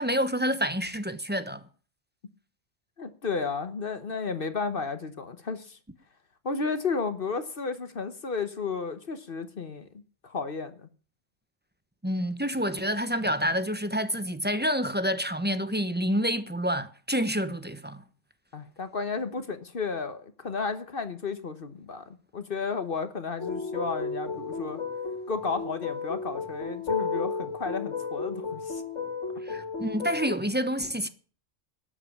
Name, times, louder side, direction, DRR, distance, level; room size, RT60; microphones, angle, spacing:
voice 1, 0.0-1.6 12.0-18.0 29.4-31.1, equal, 10° right, 1.0 m, -28 dB
voice 2, 3.0-5.8 6.4-9.9 10.2-10.9 18.5-24.8 25.3-28.8, left 4 dB, 50° left, 1.3 m, -33 dB
sound 1, 23.4-30.4, left 5 dB, 70° left, 3.1 m, -33 dB
12.5 x 8.9 x 7.2 m
omnidirectional pair, 1.3 m